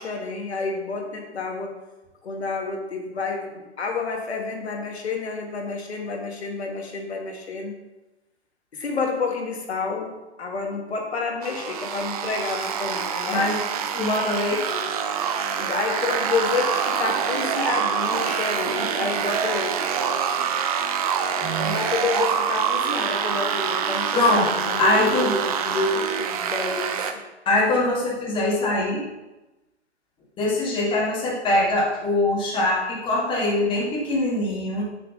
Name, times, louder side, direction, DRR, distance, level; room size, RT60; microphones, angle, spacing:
voice 1, 0.0-1.8 2.2-7.8 8.7-13.5 15.6-19.8 21.6-25.4 25.7-27.0, left 4 dB, 65° left, 2 dB, 1.8 m, -29 dB
sound 1, 11.4-27.1, right 7 dB, 35° right, 0.7 m, -26 dB
voice 2, 13.3-13.6 13.9-14.8 21.4-21.8 24.1-24.5 24.8-25.3 27.4-29.1 30.4-34.8, left 2 dB, 15° left, -4 dB, 1.8 m, -23 dB
8.7 x 6.9 x 3.8 m, 1.0 s
figure-of-eight pair, 130°, 35 cm